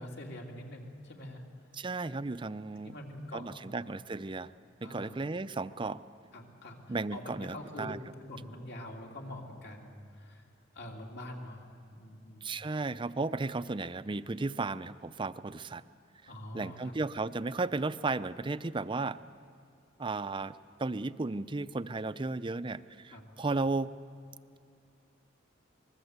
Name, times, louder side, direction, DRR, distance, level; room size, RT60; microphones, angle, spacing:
voice 1, 0.0-1.4 2.8-3.8 4.8-5.2 6.3-7.2 7.5-10.5 10.7-12.5 16.3-16.9 23.1-23.3, left 1 dB, 55° left, 0 dB, 3.2 m, -45 dB
voice 2, 1.7-3.0 3.3-4.5 4.8-6.0 6.9-8.0 12.4-15.8 16.5-19.2 20.0-24.0, right 3 dB, 25° right, 14 dB, 0.5 m, -34 dB
26.0 x 21.0 x 8.1 m, 2.3 s
head